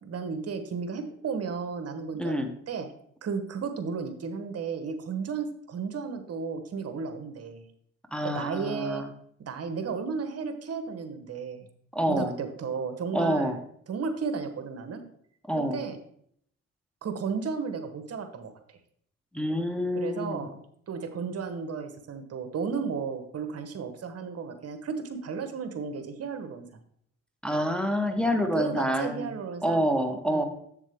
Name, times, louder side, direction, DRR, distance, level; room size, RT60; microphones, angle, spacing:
voice 1, 0.0-2.9 3.2-7.6 8.2-9.0 9.4-11.7 12.1-13.6 13.9-15.0 15.6-16.0 17.0-18.8 19.9-26.7 28.5-29.9 30.3-30.4, right 5 dB, 55° right, 8 dB, 1.0 m, -34 dB
voice 2, 2.2-2.5 8.1-9.1 11.9-12.3 13.1-13.6 15.5-15.8 19.3-20.4 27.4-29.3 29.6-30.4, equal, 5° left, 4 dB, 0.9 m, -27 dB
7.4 x 7.2 x 3.5 m, 0.67 s
cardioid pair, 90°, 30 cm